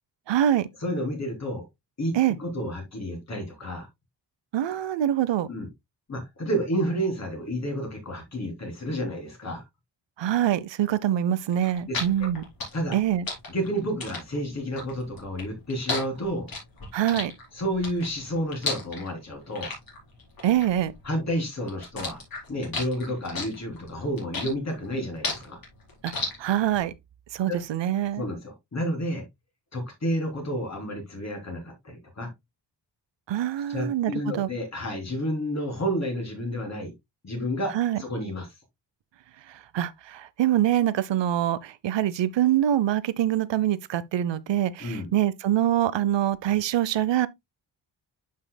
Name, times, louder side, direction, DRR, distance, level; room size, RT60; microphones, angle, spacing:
voice 1, 0.3-0.7 2.1-2.4 4.5-5.5 10.2-12.5 12.9-13.2 16.9-17.3 20.4-20.9 26.0-26.1 26.4-26.9 27.3-28.3 33.3-34.5 37.7-38.0 39.7-47.3, right 11 dB, 85° right, 0.8 m, -24 dB
voice 2, 0.8-1.6 2.0-2.1 2.4-3.9 5.5-5.7 6.1-9.6 11.9-12.3 12.7-12.9 13.5-16.5 17.5-19.7 21.0-22.2 22.5-25.6 27.5-27.7 28.2-29.2 29.7-32.3 33.7-36.9 37.2-37.7 38.0-38.5 44.8-45.1, equal, 40° left, 3.4 m, -30 dB
sound 1, 11.5-21.4 21.7-26.8, left 3 dB, 55° left, 4.6 m, -34 dB
11.0 x 5.6 x 2.2 m
wide cardioid pair, 165°, 43 cm